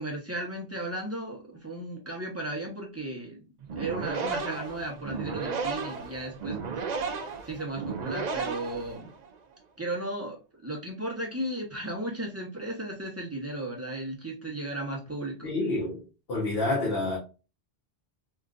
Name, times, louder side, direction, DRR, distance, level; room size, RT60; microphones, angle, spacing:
voice 1, 0.0-3.4 3.8-6.7 7.5-9.1 9.8-10.4 10.6-15.5, right 1 dB, 15° right, 0.8 m, -35 dB
sound 1, 3.6-9.3, right 5 dB, 55° right, 0.5 m, -34 dB
voice 2, 15.4-16.0 16.3-17.2, left 2 dB, 65° left, 1.3 m, -28 dB
3.5 x 2.5 x 2.4 m
omnidirectional pair, 1.0 m